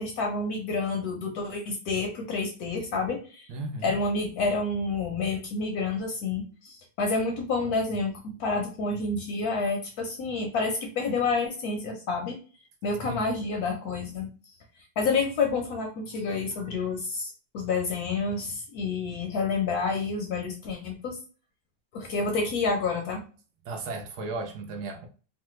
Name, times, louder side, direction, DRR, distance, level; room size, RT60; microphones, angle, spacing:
voice 1, 0.0-3.5 3.8-12.4 12.8-14.3 15.0-21.2 21.9-23.2, left 4 dB, 70° left, 0.9 m, -29 dB
voice 2, 3.5-3.9 13.0-13.3 23.6-25.1, right 3 dB, 70° right, 1.0 m, -35 dB
3.1 x 2.1 x 3.0 m
omnidirectional pair, 2.1 m